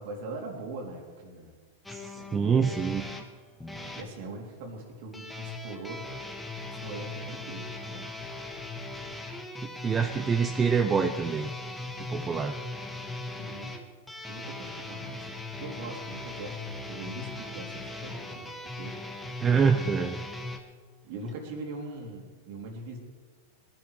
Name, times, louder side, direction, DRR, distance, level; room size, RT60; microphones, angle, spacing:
voice 1, 0.0-1.5 2.1-2.6 3.9-6.0 6.8-8.1 13.4-13.7 14.3-15.2 15.6-19.0 19.7-20.1 21.0-23.0, right 2 dB, 60° right, 1 dB, 3.5 m, -41 dB
sound 1, 1.8-4.1 5.1-20.6, left 2 dB, 5° left, 1.7 m, -39 dB
voice 2, 1.9-3.0 9.8-11.5 12.1-12.6 19.4-20.2, right 6 dB, 20° right, 7 dB, 0.7 m, -25 dB
20.0 x 10.5 x 4.9 m, 1.5 s
hypercardioid pair, 110°, 0 cm